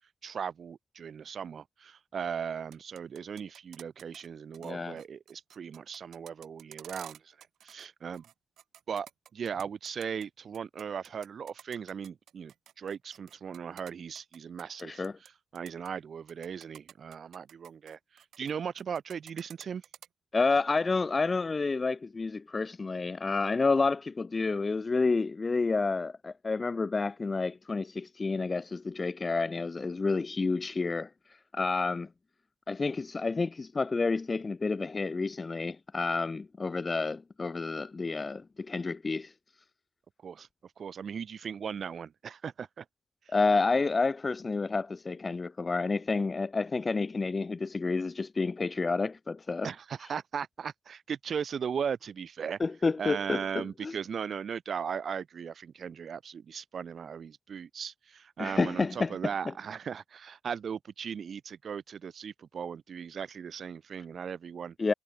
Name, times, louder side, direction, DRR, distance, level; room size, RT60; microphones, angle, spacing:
voice 1, 0.2-7.4 7.6-8.2 8.9-19.8 40.2-42.8 49.6-52.6 53.0-64.7, right 7 dB, 55° right, 1.4 m, -38 dB
sound 1, 2.6-4.3 4.5-4.7 5.0-7.9 8.1-10.3 10.5-15.3 15.6-15.9 16.3-18.5 18.8-20.1, right 10 dB, 80° right, 2.7 m, -51 dB
voice 2, 4.6-5.0 14.8-15.1 20.3-32.1 32.7-39.3 43.3-49.7 52.6-54.0 58.4-59.1 64.8-64.9, left 4 dB, 30° left, 1.7 m, -29 dB
cardioid pair, 85°, 0 cm